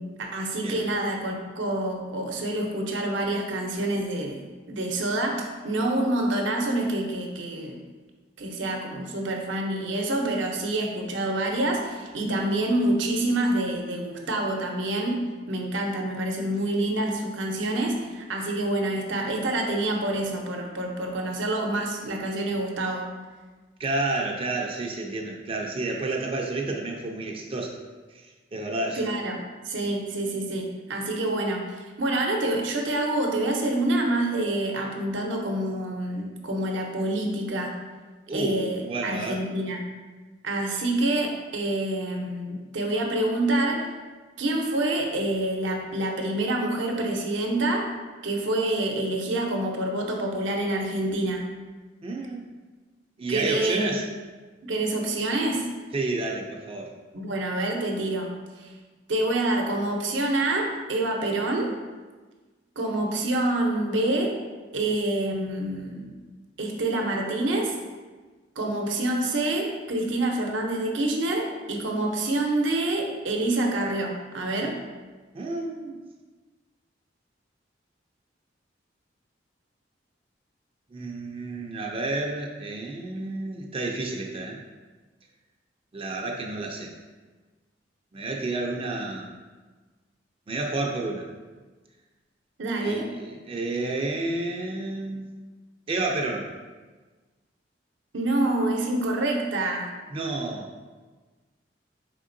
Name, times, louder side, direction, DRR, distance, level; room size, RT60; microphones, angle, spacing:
voice 1, 0.0-4.4 4.7-7.8 8.4-23.1 29.0-37.8 38.3-39.8 40.4-43.8 44.4-47.9 48.2-51.5 53.3-54.0 54.6-55.7 57.1-58.3 58.6-58.7 59.1-61.7 62.8-64.3 64.7-66.1 66.6-67.7 68.6-74.8 92.6-93.1 98.1-99.9, right 1 dB, 80° right, 1 dB, 0.6 m, -27 dB
voice 2, 23.8-27.8 28.1-29.0 38.3-39.4 52.0-52.5 53.2-54.1 55.9-56.9 75.3-76.0 80.9-84.6 85.9-86.9 88.1-89.3 90.5-91.3 92.8-95.3 95.9-96.6 100.1-100.7, right 2 dB, 30° right, 1 dB, 0.3 m, -30 dB
4.2 x 3.6 x 2.5 m, 1.3 s
head